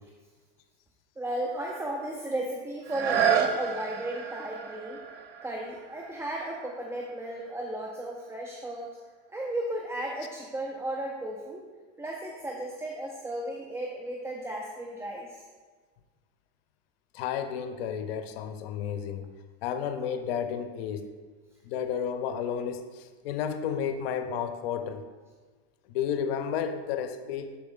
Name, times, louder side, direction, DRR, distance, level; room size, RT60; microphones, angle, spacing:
voice 1, 1.2-5.0 5.4-9.0 9.3-11.6 12.0-15.4, right 1 dB, 10° right, 0 dB, 0.4 m, -35 dB
sound 1, 2.8-8.5 9.1-9.2, right 7 dB, 85° right, 0.7 m, -32 dB
voice 2, 17.1-19.3 19.6-21.1 21.6-25.0 25.9-27.5, left 8 dB, 85° left, 9 dB, 0.6 m, -32 dB
6.9 x 4.3 x 3.6 m, 1.4 s
supercardioid pair, 125°, 29 cm